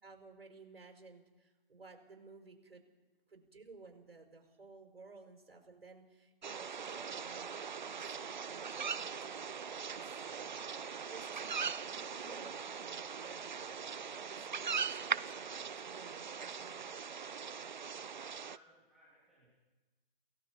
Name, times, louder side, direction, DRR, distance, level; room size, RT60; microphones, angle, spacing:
voice 1, 0.0-2.8 3.3-7.5 7.8-10.1 11.1-16.9, right 3 dB, 85° right, 3 dB, 5.6 m, -56 dB
sound 1, 6.4-18.6, right 6 dB, 50° right, 0.6 m, -41 dB
sound 2, 10.1-18.5, left 2 dB, 80° left, 4.1 m, -75 dB
voice 2, 17.9-19.5, equal, ahead, -9 dB, 3.2 m, -66 dB
27.5 x 17.0 x 5.6 m, 1.2 s
hypercardioid pair, 170°, 29 cm